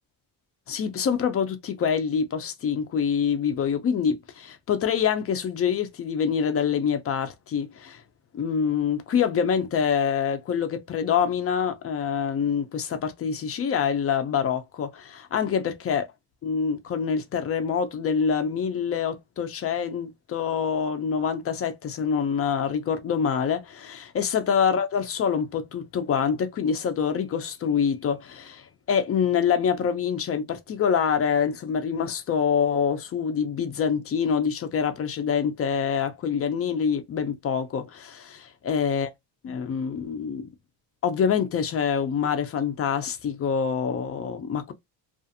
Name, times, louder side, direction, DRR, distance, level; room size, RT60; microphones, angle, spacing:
voice 1, 0.7-8.0 8.3-16.1 16.4-38.3 38.7-39.1 39.4-40.5 41.0-44.7, left 7 dB, 35° left, 0.5 m, -26 dB
2.4 x 2.4 x 2.6 m
cardioid pair, 130°, 42 cm